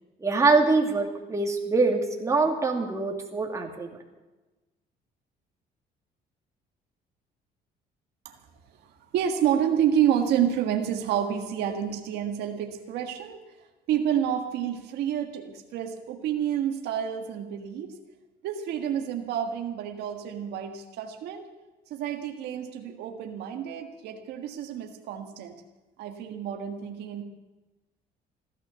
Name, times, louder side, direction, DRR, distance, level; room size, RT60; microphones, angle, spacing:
voice 1, 0.2-3.9, right 3 dB, 20° right, 0 dB, 2.6 m, -24 dB
voice 2, 8.8-13.4 13.9-18.0 18.4-21.5 21.9-25.6 26.0-27.2, right 9 dB, 80° right, 4 dB, 1.7 m, -29 dB
16.0 x 12.5 x 6.9 m, 1.1 s
cardioid pair, 110°, 17 cm